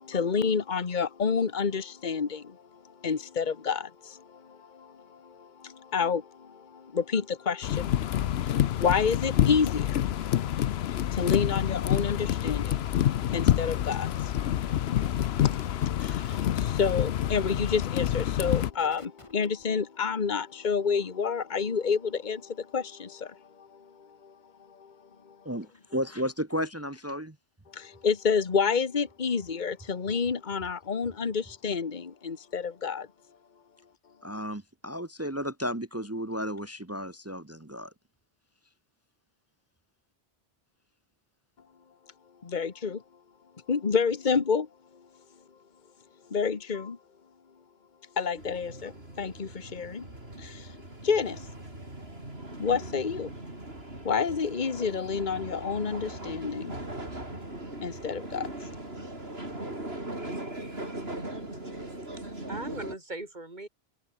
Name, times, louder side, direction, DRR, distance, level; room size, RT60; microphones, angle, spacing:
voice 1, 0.0-2.6 3.0-10.0 10.4-12.8 13.2-14.4 14.9-23.8 24.2-24.3 24.8-24.9 27.7-33.1 42.4-43.0 43.7-44.7 46.3-47.0 48.2-50.0 50.4-50.7 51.0-51.4 52.6-53.3 54.0-56.8 57.8-58.5, left 5 dB, 45° left, 1.4 m, -29 dB
sound 1, 7.6-18.7, left 11 dB, 75° left, 0.9 m, -27 dB
sound 2, 12.1-19.6, left 1 dB, 30° left, 3.1 m, -52 dB
voice 2, 25.4-27.4 34.2-37.9, equal, 15° right, 1.0 m, -33 dB
sound 3, 48.4-63.0, right 1 dB, 70° right, 6.4 m, -40 dB
voice 3, 61.4-62.0 62.5-63.7, right 2 dB, 45° right, 3.1 m, -42 dB
omnidirectional pair, 1.1 m